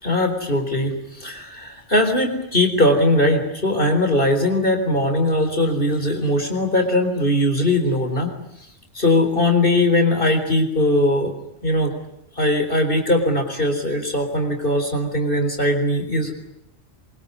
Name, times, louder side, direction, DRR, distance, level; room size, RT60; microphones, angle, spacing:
voice 1, 0.0-8.3 8.9-11.3 11.6-11.9 12.4-16.3, left 1 dB, 45° left, 5 dB, 4.2 m, -20 dB
24.0 x 23.0 x 9.7 m, 0.79 s
omnidirectional pair, 1.3 m